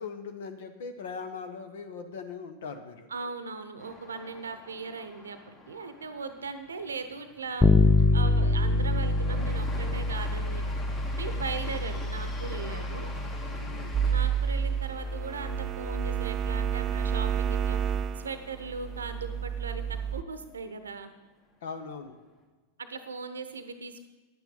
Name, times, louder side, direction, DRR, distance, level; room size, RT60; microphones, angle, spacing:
voice 1, 0.0-3.1 13.6-14.0 21.6-22.2, left 5 dB, 55° left, 7 dB, 1.0 m, -40 dB
voice 2, 3.1-7.7 8.1-10.6 11.2-13.1 14.0-17.8 18.2-21.1 22.8-24.0, right 4 dB, 70° right, 10 dB, 0.8 m, -38 dB
sound 1, 3.8-17.5 17.8-17.9 18.3-18.9, left 3 dB, 30° left, 1.8 m, -45 dB
Bass guitar, 7.6-17.3, left 2 dB, 5° left, 0.6 m, -27 dB
sound 2, 13.9-20.2, right 8 dB, 35° right, 0.4 m, -30 dB
10.5 x 9.3 x 5.4 m, 1.3 s
figure-of-eight pair, 90°, 0 cm